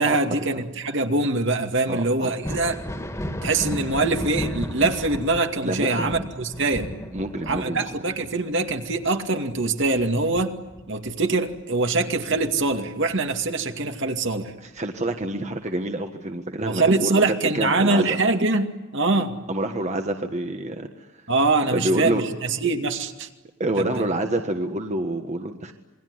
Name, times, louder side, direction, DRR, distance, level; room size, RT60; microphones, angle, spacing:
voice 1, 0.0-2.7 3.4-6.9 7.5-10.6 10.9-14.5 16.6-19.3 21.3-23.3 23.8-24.0, right 3 dB, 60° right, 5 dB, 2.3 m, -23 dB
voice 2, 1.9-2.6 5.6-6.1 7.1-7.9 14.6-17.2 17.5-18.2 19.1-19.2 19.5-20.9 21.7-22.2 23.6-25.7, right 1 dB, 35° right, 5 dB, 1.5 m, -27 dB
Thunder, 2.3-11.6 12.0-13.2 14.8-14.9 15.7-15.8, equal, 15° left, 2.3 m, -35 dB
27.5 x 22.0 x 9.7 m, 1.1 s
head